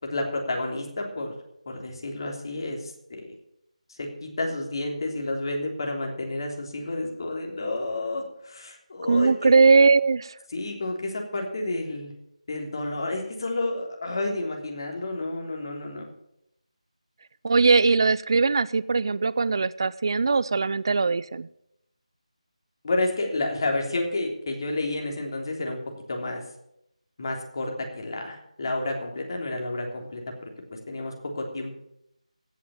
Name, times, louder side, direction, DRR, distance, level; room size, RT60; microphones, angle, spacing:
voice 1, 0.0-1.3 1.6-3.3 3.9-9.5 10.5-12.1 12.5-16.1 17.5-17.6 22.8-25.8 26.1-26.4 27.2-31.7, left 2 dB, 40° left, 2 dB, 3.2 m, -30 dB
voice 2, 9.1-10.3 17.4-21.5, right 4 dB, 40° right, 18 dB, 0.5 m, -20 dB
16.5 x 6.0 x 7.1 m, 0.77 s
figure-of-eight pair, 170°, 4 cm